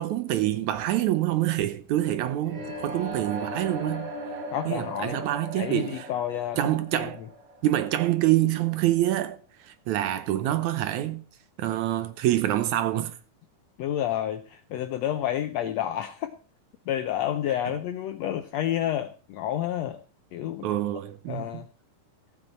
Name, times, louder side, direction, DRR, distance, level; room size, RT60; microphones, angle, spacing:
voice 1, 0.0-4.1 4.7-6.1 6.6-7.2 7.6-11.2 11.6-13.2 17.5-17.6 20.6-21.6, right 14 dB, 75° right, 1.9 m, -26 dB
sound 1, 2.4-8.3, right 1 dB, 50° right, 2.6 m, -38 dB
voice 2, 4.5-5.2 5.6-7.1 13.8-16.3 16.9-20.0 20.3-20.7 21.3-21.6, left 11 dB, 80° left, 1.5 m, -30 dB
15.0 x 8.6 x 4.4 m
omnidirectional pair, 3.7 m